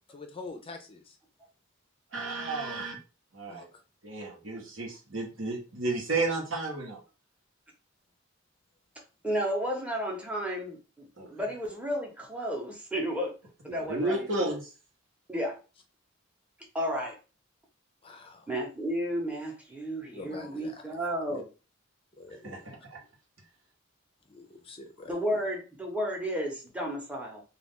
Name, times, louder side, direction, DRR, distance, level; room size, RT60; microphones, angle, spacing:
voice 1, 0.1-1.2 3.5-3.7 18.0-18.5 20.0-21.0 21.3-21.4 22.2-22.6 24.3-25.4, left 3 dB, 30° left, 0.4 m, -45 dB
voice 2, 2.1-3.0 3.3-3.7 4.0-7.0 11.2-11.3 13.7-14.6 22.4-23.0, right 2 dB, 75° right, 1.0 m, -32 dB
voice 3, 9.2-13.3 13.6-14.3 15.3-15.6 16.7-17.2 18.5-21.5 25.1-27.4, equal, 5° right, 0.8 m, -32 dB
2.4 x 2.3 x 3.5 m
head